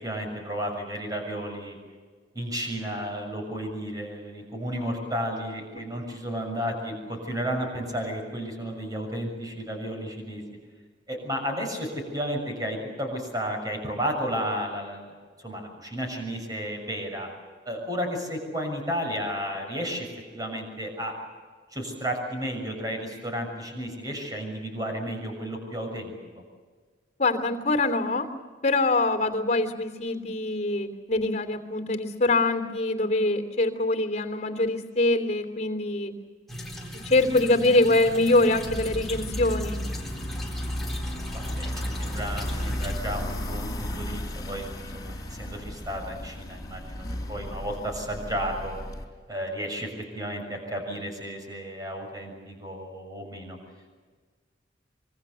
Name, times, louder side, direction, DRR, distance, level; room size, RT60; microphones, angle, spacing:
voice 1, 0.0-1.8 2.3-10.4 11.1-17.3 17.6-20.1 20.3-21.1 21.7-26.1 41.3-44.7 44.9-45.1 45.4-48.8 49.3-53.6, equal, 20° right, 2 dB, 6.7 m, -33 dB
voice 2, 27.2-28.3 28.6-36.1 37.0-39.8, left 2 dB, 40° left, 5 dB, 3.0 m, -24 dB
sound 1, 36.5-43.0, equal, ahead, 4.0 m, -38 dB
sound 2, 38.7-49.0, equal, 20° left, 4.2 m, -34 dB
26.0 x 24.5 x 6.9 m, 1.5 s
head